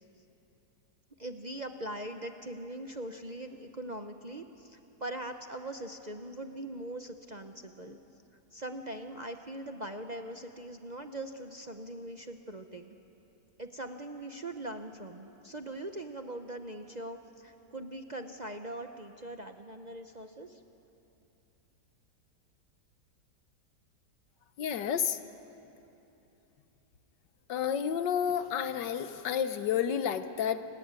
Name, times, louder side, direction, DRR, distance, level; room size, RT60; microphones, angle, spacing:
voice 1, 1.2-8.0 8.5-12.9 13.6-20.6, right 1 dB, 35° right, 6 dB, 0.7 m, -41 dB
voice 2, 24.6-25.2 27.5-30.7, left 8 dB, 85° left, 11 dB, 1.6 m, -30 dB
29.5 x 18.5 x 9.0 m, 2.9 s
omnidirectional pair, 1.8 m